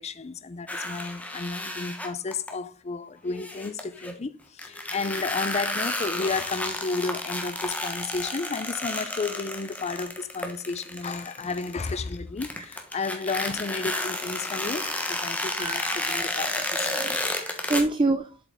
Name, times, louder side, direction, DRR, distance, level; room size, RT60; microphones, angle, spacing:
voice 1, 0.0-17.2, left 4 dB, 35° left, 0.5 m, -32 dB
sound 1, 0.7-2.5 3.4-4.1 4.6-12.2 12.4-17.8, left 1 dB, 10° left, 1.1 m, -31 dB
voice 2, 15.6-16.3 17.1-18.4, right 2 dB, 25° right, 0.5 m, -28 dB
7.7 x 5.3 x 3.6 m
head